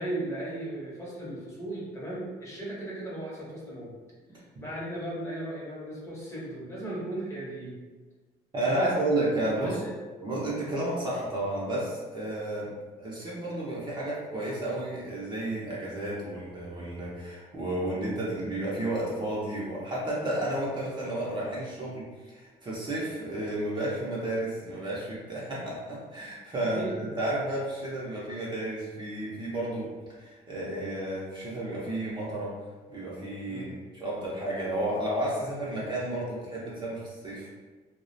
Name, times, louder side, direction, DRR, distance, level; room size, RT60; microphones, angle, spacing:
voice 1, 0.0-4.0 4.3-7.7 8.6-8.9 9.5-9.9 26.7-27.0 33.5-33.7, right 1 dB, 15° left, -6 dB, 0.8 m, -36 dB
voice 2, 8.5-9.8 10.2-12.7 13.0-29.9 30.2-32.5 32.9-37.5, right 1 dB, 25° right, -6 dB, 0.6 m, -32 dB
2.3 x 2.1 x 2.6 m, 1.3 s
cardioid pair, 110°, 17 cm